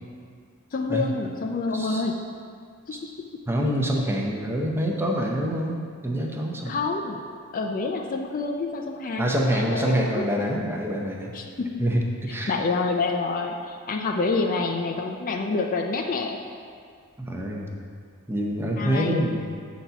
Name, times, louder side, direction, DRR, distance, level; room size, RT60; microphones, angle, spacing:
voice 1, 0.7-2.2 2.9-3.0 6.7-7.2 7.5-10.2 11.3-11.8 12.5-16.4 18.8-19.3, left 3 dB, 40° left, 3 dB, 0.4 m, -27 dB
voice 2, 1.7-2.0 2.9-3.0 3.5-6.7 9.2-11.3 11.8-12.6 17.2-17.7 18.3-19.4, equal, 10° right, -1 dB, 0.7 m, -26 dB
7.3 x 4.1 x 5.7 m, 2.2 s
head